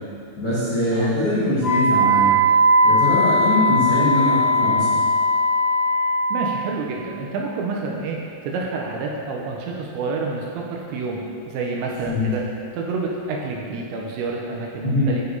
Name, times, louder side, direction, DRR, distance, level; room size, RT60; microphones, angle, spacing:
voice 1, 0.4-2.3 2.8-5.0 12.1-12.3 14.8-15.1, left 1 dB, 90° left, -14 dB, 1.1 m, -22 dB
Wind instrument woodwind instrument, 1.6-6.4, equal, 55° left, 2.7 m, -18 dB
voice 2, 6.3-12.4 12.7-15.2, right 3 dB, 85° right, -1 dB, 2.7 m, -28 dB
10.5 x 4.8 x 2.6 m, 2.5 s
omnidirectional pair, 5.4 m